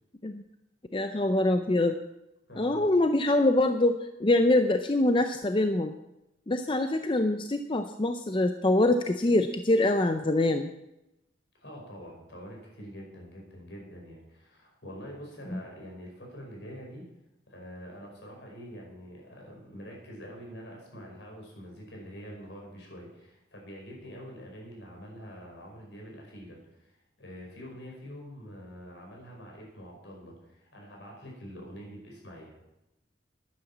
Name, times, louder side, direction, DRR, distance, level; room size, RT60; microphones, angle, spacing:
voice 1, 0.9-2.0 2.6-5.9 6.5-10.7 15.5-15.6, left 2 dB, 25° left, 8 dB, 0.5 m, -24 dB
voice 2, 2.5-2.9 11.6-17.1 17.5-32.6, equal, 70° left, -1 dB, 5.2 m, -45 dB
11.0 x 9.9 x 7.2 m, 0.91 s
head